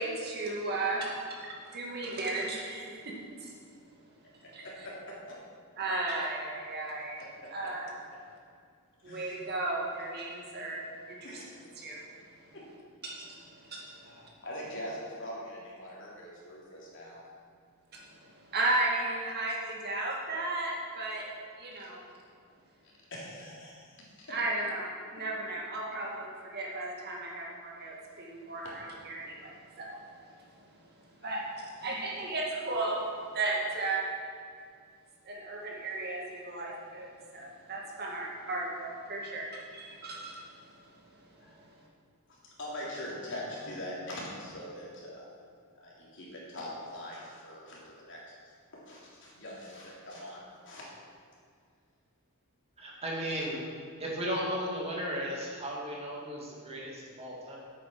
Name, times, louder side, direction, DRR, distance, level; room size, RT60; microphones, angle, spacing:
voice 1, 0.0-3.5 4.5-4.7 5.8-7.2 7.5-7.9 9.0-10.8 11.1-11.2 11.8-12.1 13.0-14.3 17.9-21.3 21.6-22.0 24.3-30.0 31.2-34.1 35.3-37.1 37.3-40.4 40.8-40.9 41.2-41.6, right 2 dB, 45° right, -2 dB, 2.1 m, -35 dB
voice 2, 4.6-5.3 9.0-9.3 11.2-11.4 12.5-12.6 14.0-17.2 23.1-23.8 31.2-31.4 41.4-41.5 42.6-45.3 45.8-48.2 48.9-50.8 53.3-53.5, left 1 dB, 60° left, -5 dB, 3.3 m, -42 dB
voice 3, 52.8-53.6 54.0-57.6, equal, 30° right, -3 dB, 2.2 m, -35 dB
10.5 x 8.5 x 6.0 m, 2.2 s
head